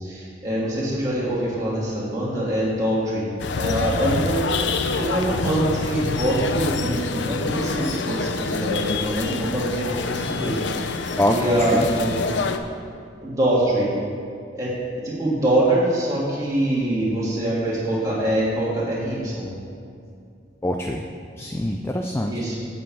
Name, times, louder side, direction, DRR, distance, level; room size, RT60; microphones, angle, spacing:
voice 1, 0.0-3.3 3.5-4.5 5.0-12.2 13.2-13.9 14.5-14.7 15.0-19.5 22.3-22.6, right 1 dB, 20° right, -7 dB, 1.9 m, -24 dB
sound 1, 3.4-12.6, left 4 dB, 70° left, 0.5 m, -26 dB
voice 2, 11.2-11.9 20.6-21.1 21.4-22.4, left 1 dB, 15° left, 3 dB, 0.3 m, -24 dB
8.3 x 5.5 x 7.0 m, 2.4 s
head